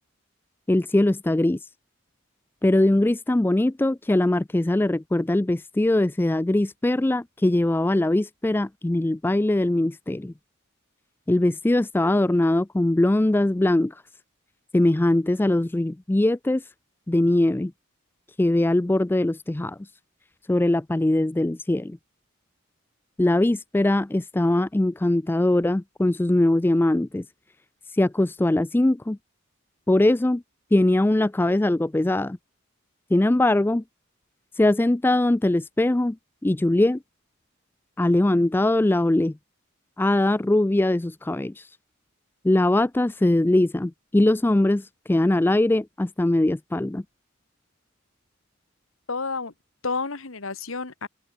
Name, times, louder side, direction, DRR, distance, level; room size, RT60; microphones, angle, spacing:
voice 1, 0.7-1.6 2.6-10.3 11.3-13.9 14.7-16.6 17.1-17.7 18.4-19.8 20.5-22.0 23.2-27.3 28.0-29.2 29.9-30.4 30.7-32.4 33.1-33.8 34.6-36.2 36.4-37.0 38.0-39.4 40.0-41.7 42.4-47.0, left 1 dB, 10° left, 0.3 m, -21 dB
voice 2, 49.1-49.5 49.8-51.1, left 4 dB, 75° left, 1.8 m, -30 dB
open air
head